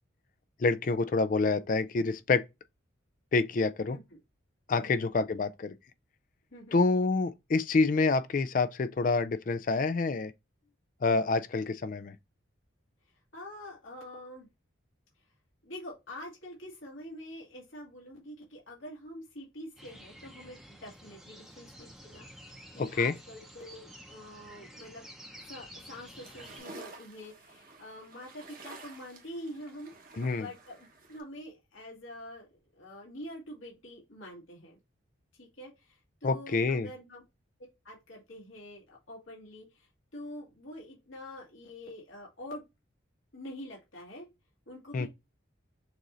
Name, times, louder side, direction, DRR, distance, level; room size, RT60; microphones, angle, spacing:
voice 1, 0.6-2.4 3.3-4.0 4.7-5.7 6.7-10.3 11.0-12.1 22.8-23.1 30.2-30.5 36.2-36.9 44.9-45.1, left 3 dB, 40° left, 0.3 m, -27 dB
voice 2, 6.5-6.8 13.3-14.5 15.6-25.1 25.5-34.8 35.3-37.2 37.8-42.6 43.3-44.3 44.7-45.1, left 1 dB, 80° left, 1.9 m, -46 dB
sound 1, 19.8-26.6, equal, ahead, 0.7 m, -51 dB
sound 2, 25.9-31.2, right 3 dB, 45° right, 1.0 m, -50 dB
6.4 x 2.6 x 3.0 m
head